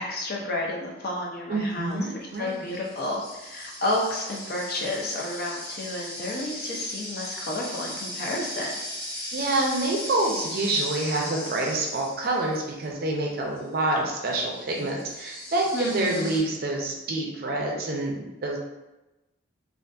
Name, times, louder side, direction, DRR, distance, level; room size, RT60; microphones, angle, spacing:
voice 1, 0.0-8.7 15.7-16.4, left 1 dB, 50° left, -1 dB, 0.5 m, -31 dB
voice 2, 1.5-2.7 9.3-18.6, right 2 dB, 50° right, -1 dB, 0.4 m, -27 dB
sound 1, 1.7-1.9 2.5-12.8 13.6-13.7 14.2-16.4, left 1 dB, 10° left, 1.1 m, -38 dB
2.6 x 2.4 x 2.2 m, 1.0 s
head